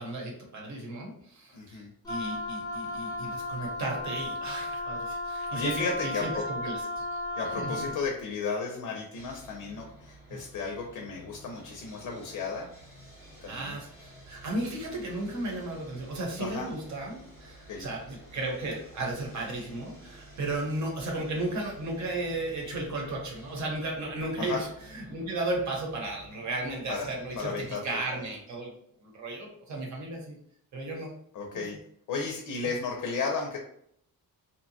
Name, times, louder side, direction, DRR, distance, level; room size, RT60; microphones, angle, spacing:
voice 1, 0.0-7.2 7.6-7.8 10.3-10.4 13.5-28.7 29.0-30.4 30.7-31.1 31.5-31.6 32.6-32.7, right 2 dB, 50° right, 0 dB, 0.8 m, -35 dB
voice 2, 1.5-1.9 5.5-6.4 7.4-12.7 13.4-13.8 16.4-16.7 17.7-17.9 24.4-24.6 26.9-27.1 27.4-28.0 31.3-31.8 32.1-33.6, left 4 dB, 65° left, 0 dB, 0.6 m, -34 dB
Wind instrument woodwind instrument, 2.0-8.0, left 1 dB, 10° left, 0.4 m, -35 dB
Sawing, 9.1-27.4, right 1 dB, 10° right, 0.9 m, -52 dB
2.7 x 2.2 x 2.7 m, 0.67 s
cardioid pair, 170°, 35 cm